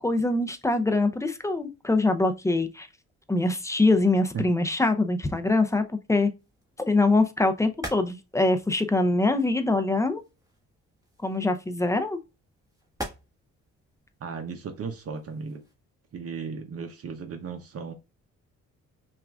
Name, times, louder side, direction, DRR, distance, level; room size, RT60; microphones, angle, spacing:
voice 1, 0.0-2.9 3.3-6.3 6.9-10.2 11.2-12.2, left 2 dB, 10° left, 0.5 m, -24 dB
sound 1, 6.4-15.8, right 1 dB, 10° right, 1.4 m, -46 dB
voice 2, 14.2-15.6 16.1-17.9, right 5 dB, 50° right, 0.7 m, -35 dB
5.6 x 2.5 x 2.3 m
cardioid pair, 90°, 30 cm